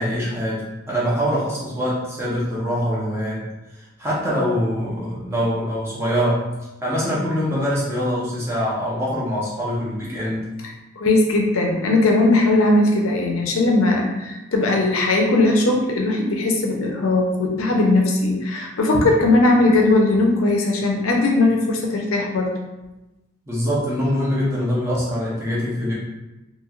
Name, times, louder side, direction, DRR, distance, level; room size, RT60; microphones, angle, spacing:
voice 1, 0.0-3.4 3.7-6.4 6.8-10.5 23.5-25.9, equal, 15° right, -7 dB, 0.8 m, -24 dB
voice 2, 11.0-22.5, left 2 dB, 90° left, 1 dB, 0.6 m, -18 dB
3.0 x 2.8 x 2.4 m, 1.0 s
head